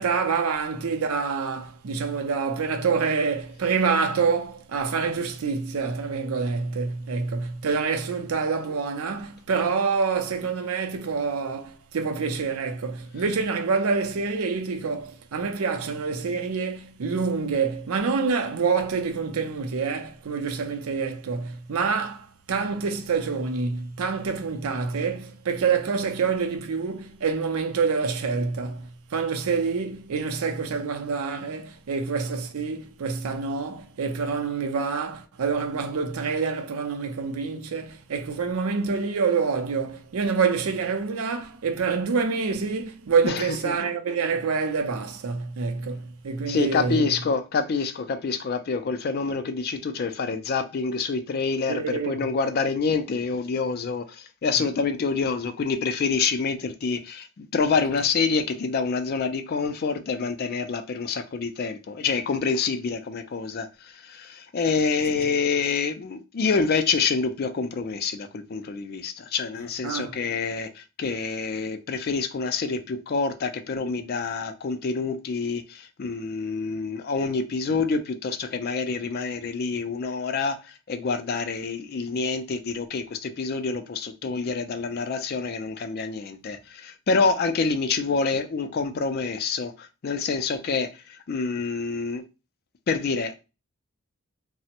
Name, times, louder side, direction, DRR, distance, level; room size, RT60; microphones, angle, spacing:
voice 1, 0.0-47.1 51.7-52.2 69.8-70.2, right 5 dB, 75° right, 0.5 m, -27 dB
voice 2, 43.2-43.8 46.5-92.2 92.9-93.4, left 4 dB, 45° left, 0.3 m, -27 dB
3.2 x 2.0 x 2.8 m
head